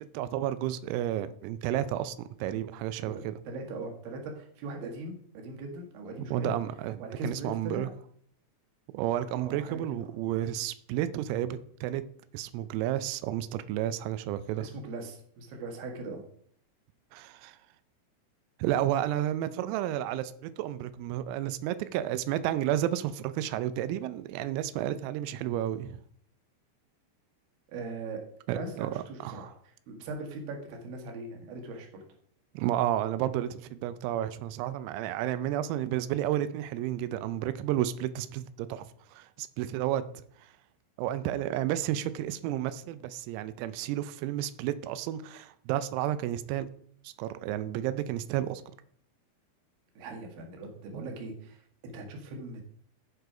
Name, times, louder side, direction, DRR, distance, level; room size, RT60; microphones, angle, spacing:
voice 1, 0.0-3.3 6.2-7.9 8.9-12.0 12.3-14.7 17.1-17.6 18.6-26.0 28.5-29.5 32.5-38.9 39.1-40.1 41.0-46.7 47.0-48.6 50.9-51.1, right 12 dB, 90° right, 3.4 m, -31 dB
voice 2, 3.0-6.5 7.0-7.9 9.4-10.1 14.6-16.2 27.7-28.2 28.5-32.0 50.0-52.7, right 2 dB, 60° right, 2.8 m, -40 dB
14.0 x 4.8 x 5.0 m
omnidirectional pair, 5.9 m